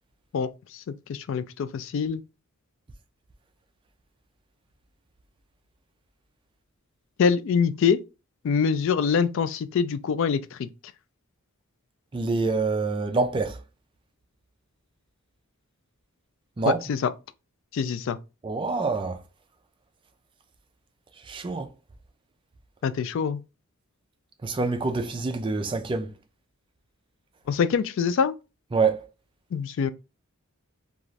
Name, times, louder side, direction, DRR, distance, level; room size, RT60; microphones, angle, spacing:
voice 1, 0.3-0.8 1.1-2.2 7.2-8.0 8.4-10.7 16.7-17.0 17.7-18.2 22.8-23.4 27.5-28.3 29.5-29.9, left 6 dB, 60° left, 0.3 m, -25 dB
voice 2, 12.1-13.6 16.6-16.8 18.4-19.2 21.3-21.7 24.4-26.1 28.7-29.1, right 3 dB, 25° right, 0.3 m, -26 dB
2.5 x 2.4 x 3.0 m
head